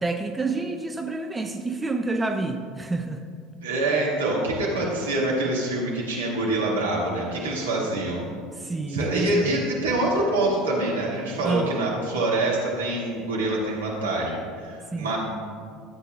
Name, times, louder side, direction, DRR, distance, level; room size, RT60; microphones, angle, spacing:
voice 1, 0.0-3.2 8.6-9.6 11.4-11.7 14.9-15.1, right 3 dB, 15° right, 6 dB, 0.5 m, -28 dB
voice 2, 3.6-8.2 8.9-15.2, right 2 dB, 75° right, -4 dB, 2.0 m, -25 dB
13.5 x 8.1 x 2.4 m, 2.1 s
figure-of-eight pair, 70°, 0 cm